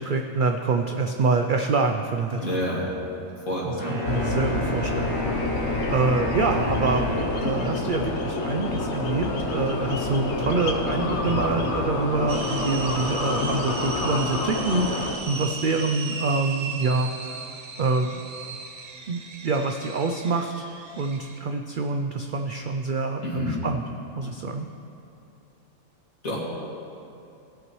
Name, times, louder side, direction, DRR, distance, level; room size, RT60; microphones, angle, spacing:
voice 1, 0.0-2.4 3.9-5.2 5.9-17.4 17.8-18.2 19.1-20.6 21.0-23.9 24.2-24.7, right 3 dB, 75° right, 5 dB, 0.4 m, -26 dB
voice 2, 2.4-2.9 3.4-4.0 23.2-23.7 26.2-26.4, left 1 dB, 75° left, -6 dB, 2.4 m, -28 dB
Wind instrument woodwind instrument, 3.8-8.0, left 1 dB, 20° right, 2.2 m, -33 dB
sound 1, 4.0-15.2, left 2 dB, 55° left, 1.1 m, -28 dB
sound 2, 12.3-21.4, right 4 dB, 50° right, 0.8 m, -37 dB
17.5 x 8.1 x 3.1 m, 2.7 s
omnidirectional pair, 1.4 m